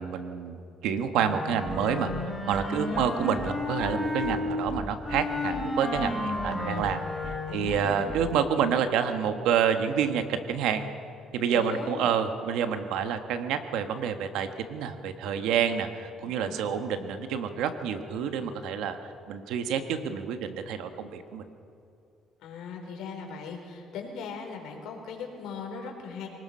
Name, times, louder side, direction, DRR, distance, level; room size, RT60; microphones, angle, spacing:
voice 1, 0.0-10.8 11.3-21.5, right 7 dB, 85° right, 8 dB, 1.5 m, -28 dB
Wind instrument woodwind instrument, 1.1-4.4 5.0-7.8, left 2 dB, 10° left, 7.2 m, -32 dB
sound 1, 1.7-1.8 2.1-2.2 2.5-2.6 2.9-3.1 3.4-3.5 3.8-3.9 4.2-4.4 4.7-5.2 5.5-5.6 5.9-6.1 6.4-6.5 6.8-6.9 7.2-7.4 7.7-7.8 8.1-8.3, equal, 15° right, 1.6 m, -39 dB
voice 2, 2.9-3.2 7.5-8.1 11.5-12.1 16.3-16.5 22.4-26.3, left 5 dB, 80° left, 2 dB, 4.3 m, -39 dB
24.0 x 19.5 x 5.7 m, 2.6 s
cardioid pair, 120°, 0 cm